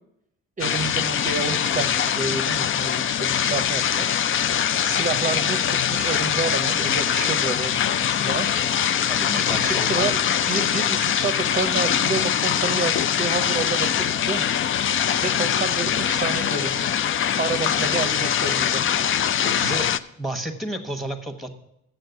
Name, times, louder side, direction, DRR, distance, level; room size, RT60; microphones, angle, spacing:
sound 1, 0.6-20.0, left 9 dB, 45° left, 0.4 m, -23 dB
voice 1, 0.6-4.1 4.8-8.5 9.6-10.2 10.5-14.6 15.2-16.9 17.4-18.8, right 4 dB, 25° right, 5 dB, 0.7 m, -29 dB
voice 2, 9.1-10.1 19.4-19.9 20.2-21.5, right 1 dB, ahead, 7 dB, 1.2 m, -31 dB
7.7 x 6.4 x 8.0 m, 0.82 s
cardioid pair, 90°, 30 cm